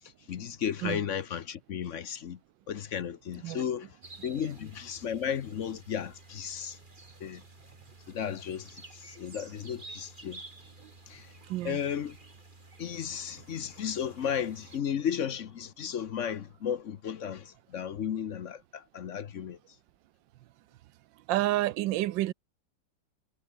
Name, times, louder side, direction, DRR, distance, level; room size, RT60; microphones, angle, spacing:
voice 1, 0.3-2.4 2.7-3.9 4.2-6.8 7.2-7.4 8.1-10.4 11.1-11.3 11.6-12.2 12.8-19.6, left 8 dB, 55° left, 0.9 m, -34 dB
sound 1, 4.0-14.8, right 2 dB, 25° right, 3.2 m, -51 dB
voice 2, 21.3-22.3, right 15 dB, 85° right, 1.3 m, -29 dB
omnidirectional pair, 2.0 m